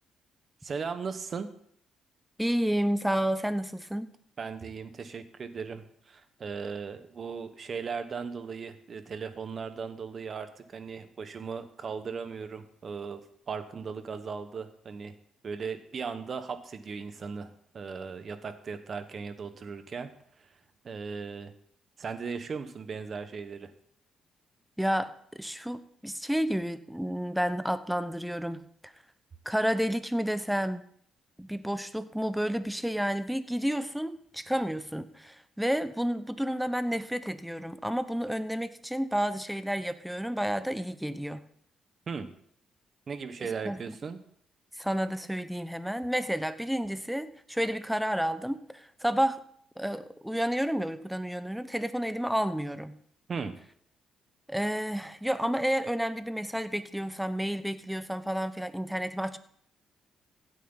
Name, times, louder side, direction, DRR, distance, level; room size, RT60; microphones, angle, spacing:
voice 1, 0.6-1.5 4.4-15.1 15.4-20.1 20.8-21.5 22.0-23.7 42.1-42.3 43.1-44.2 53.3-53.5, right 5 dB, 45° right, 10 dB, 1.3 m, -37 dB
voice 2, 2.4-4.1 24.8-28.9 29.4-30.8 31.4-41.4 43.4-44.0 44.8-49.4 49.8-53.0 54.5-59.4, equal, ahead, 12 dB, 0.9 m, -30 dB
16.0 x 9.4 x 4.0 m, 0.63 s
cardioid pair, 90°, 0 cm